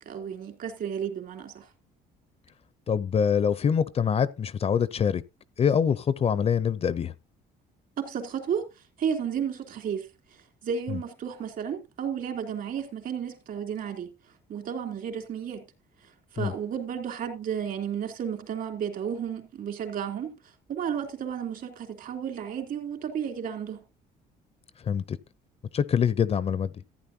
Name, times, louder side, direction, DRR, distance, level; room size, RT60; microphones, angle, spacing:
voice 1, 0.0-1.7 8.0-14.1 14.5-15.6 16.0-23.8, right 8 dB, 60° right, 3.1 m, -33 dB
voice 2, 2.9-5.2 5.6-7.1 10.9-11.0 16.4-16.5 24.8-25.2 25.7-26.7, left 7 dB, 35° left, 0.6 m, -25 dB
14.5 x 9.4 x 2.8 m
cardioid pair, 110°, 17 cm